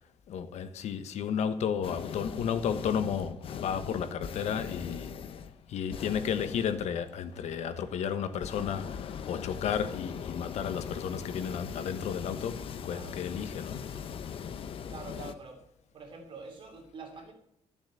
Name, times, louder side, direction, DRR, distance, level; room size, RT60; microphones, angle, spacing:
voice 1, 0.3-5.1 5.7-13.9, left 7 dB, 75° left, 1.3 m, -33 dB
sound 1, 1.8-15.3, left 7 dB, 50° left, 0.9 m, -41 dB
voice 2, 3.6-4.1 12.9-13.2 14.9-15.6 15.9-17.3, right 4 dB, 45° right, 2.8 m, -46 dB
14.5 x 7.3 x 7.6 m
cardioid pair, 170°, 12 cm